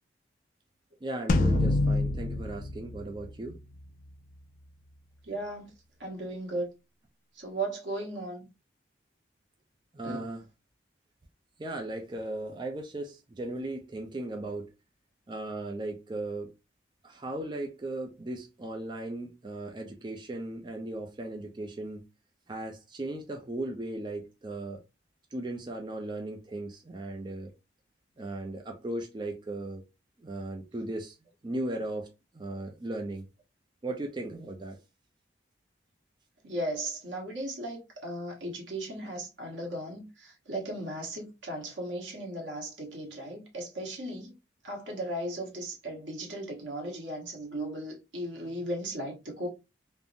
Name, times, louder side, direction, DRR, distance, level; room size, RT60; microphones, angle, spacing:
voice 1, 1.0-3.6 9.9-10.4 11.6-14.7 15.3-16.5 17.0-22.0 22.5-24.8 25.3-27.5 28.2-29.8 30.2-31.2 31.4-32.1 32.3-33.2 33.8-34.8, right 2 dB, 25° right, 0.4 m, -37 dB
sound 1, 1.3-3.8, left 2 dB, 50° left, 0.4 m, -27 dB
voice 2, 5.2-5.7 6.0-6.7 7.3-8.5 10.0-10.2 36.4-44.3 44.6-49.5, right 1 dB, 85° right, 1.2 m, -36 dB
3.5 x 2.0 x 2.5 m
head